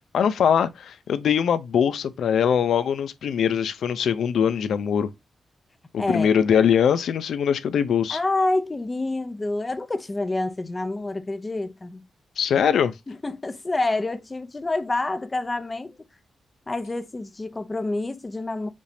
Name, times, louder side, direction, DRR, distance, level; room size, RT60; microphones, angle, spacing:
voice 1, 0.1-5.1 5.9-8.2 12.4-12.9, left 8 dB, 85° left, 0.5 m, -22 dB
voice 2, 8.1-12.1 13.1-15.9 16.7-18.7, left 2 dB, 25° left, 0.7 m, -27 dB
5.2 x 3.4 x 2.6 m
wide cardioid pair, 115°, 0 cm